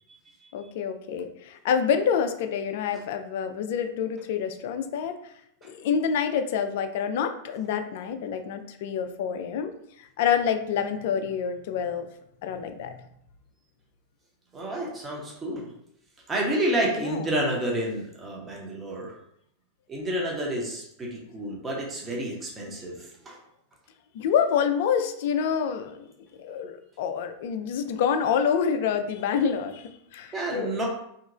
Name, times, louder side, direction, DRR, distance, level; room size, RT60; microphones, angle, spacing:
voice 1, 0.5-5.2 5.6-9.7 10.2-12.1 12.4-13.0 17.0-17.2 24.1-26.0 26.4-30.8, left 7 dB, 50° left, 7 dB, 0.3 m, -27 dB
voice 2, 14.5-15.7 16.3-19.1 19.9-23.4 30.3-30.9, right 1 dB, 20° right, -2 dB, 0.8 m, -30 dB
2.9 x 2.8 x 2.5 m, 0.73 s
figure-of-eight pair, 90°, 0 cm